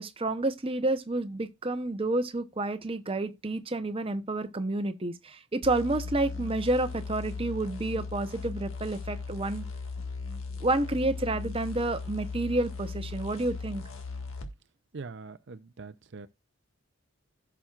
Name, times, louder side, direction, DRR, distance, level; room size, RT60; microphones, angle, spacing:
voice 1, 0.0-9.6 10.6-13.8, right 2 dB, 25° right, 0.8 m, -30 dB
sound 1, 5.6-14.5, left 4 dB, 90° left, 1.7 m, -38 dB
voice 2, 14.9-16.3, right 4 dB, 60° right, 0.6 m, -43 dB
16.0 x 6.0 x 2.4 m
head